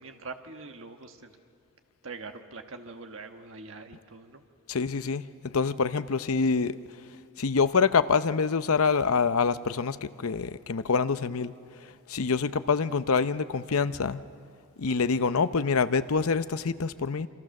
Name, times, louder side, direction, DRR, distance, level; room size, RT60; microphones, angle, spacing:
voice 1, 0.0-1.3 2.0-4.4, right 3 dB, 60° right, 5 dB, 1.4 m, -43 dB
voice 2, 4.7-5.3 5.5-6.8 7.4-11.5 12.1-14.2 14.8-17.3, left 5 dB, 75° left, 13 dB, 0.7 m, -26 dB
27.5 x 26.0 x 6.5 m, 2.5 s
head